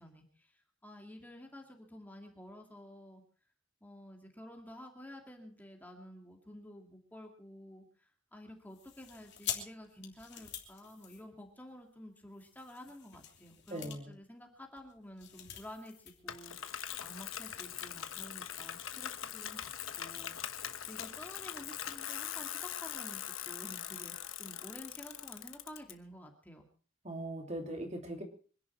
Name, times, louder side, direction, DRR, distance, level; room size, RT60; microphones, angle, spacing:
voice 1, 0.0-3.2 3.8-19.7 20.0-26.7, left 1 dB, 10° left, 2 dB, 2.3 m, -51 dB
sound 1, 8.7-11.8 12.3-16.2 16.5-16.6 17.0-18.2, left 10 dB, 60° left, 3.0 m, -46 dB
voice 2, 13.7-14.1 27.0-28.2, right 1 dB, 35° right, 3 dB, 3.1 m, -40 dB
Bicycle, 16.3-25.9, left 10 dB, 90° left, 1.3 m, -42 dB
25.5 x 11.0 x 4.6 m, 0.41 s
head